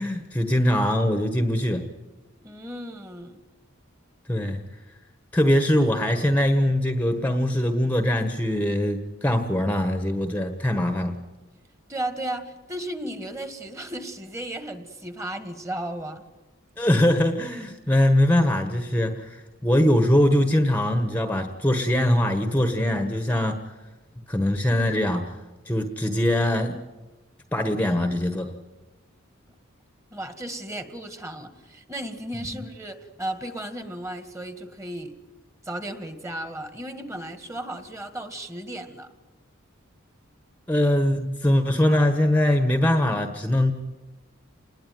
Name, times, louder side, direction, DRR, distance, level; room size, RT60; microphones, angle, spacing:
voice 1, 0.0-1.9 4.3-4.6 5.3-11.2 16.8-23.6 24.3-25.4 25.6-26.8 27.5-28.5 40.7-43.7, left 1 dB, 10° left, 7 dB, 1.3 m, -22 dB
voice 2, 2.4-3.4 11.9-16.2 30.1-35.1 35.6-39.1, right 1 dB, 15° right, 9 dB, 2.0 m, -35 dB
27.0 x 20.5 x 9.4 m, 1.1 s
head